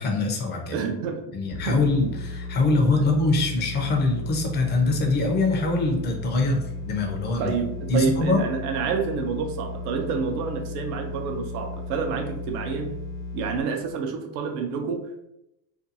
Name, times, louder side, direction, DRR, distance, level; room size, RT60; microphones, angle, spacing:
voice 1, 0.0-0.7 1.3-7.5 7.9-8.4, left 3 dB, 25° left, 2 dB, 0.4 m, -23 dB
voice 2, 0.7-1.3 1.7-1.9 3.0-3.1 7.4-12.9 13.3-15.2, right 5 dB, 75° right, 4 dB, 0.6 m, -28 dB
sound 1, 1.5-13.6, left 3 dB, 70° left, 0.7 m, -35 dB
2.5 x 2.2 x 2.6 m, 0.87 s
supercardioid pair, 130°, 46 cm